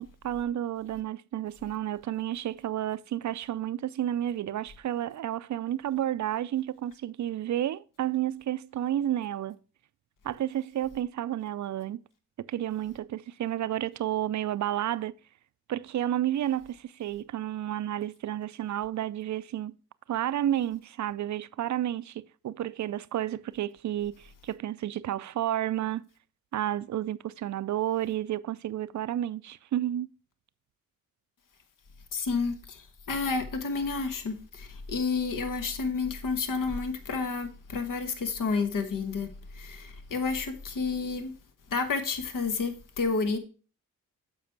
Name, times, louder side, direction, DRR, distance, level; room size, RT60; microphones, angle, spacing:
voice 1, 0.0-9.6 10.2-12.0 12.4-15.2 15.7-19.8 20.1-26.1 26.5-30.1, right 12 dB, 55° right, 0.5 m, -31 dB
voice 2, 32.1-41.3 41.7-43.4, left 4 dB, 60° left, 1.3 m, -30 dB
7.4 x 4.9 x 4.6 m
supercardioid pair, 50°, 36 cm